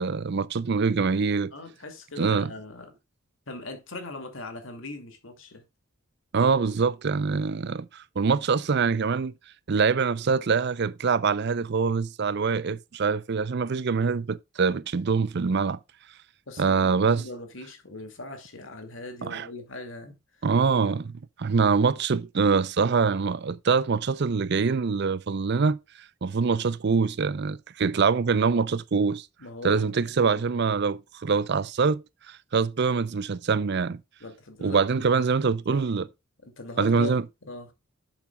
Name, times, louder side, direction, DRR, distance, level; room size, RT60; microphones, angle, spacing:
voice 1, 0.0-1.5 2.2-2.5 6.3-9.3 9.7-15.8 16.6-17.2 19.2-19.5 20.4-21.1 21.4-25.8 26.2-29.3 29.6-34.0 34.6-36.1 36.8-37.2, right 5 dB, 55° right, 0.5 m, -24 dB
voice 2, 1.5-2.9 3.5-5.6 16.5-20.5 29.4-30.6 34.2-35.9 36.4-37.7, left 2 dB, 65° left, 2.4 m, -40 dB
10.5 x 7.4 x 2.3 m
head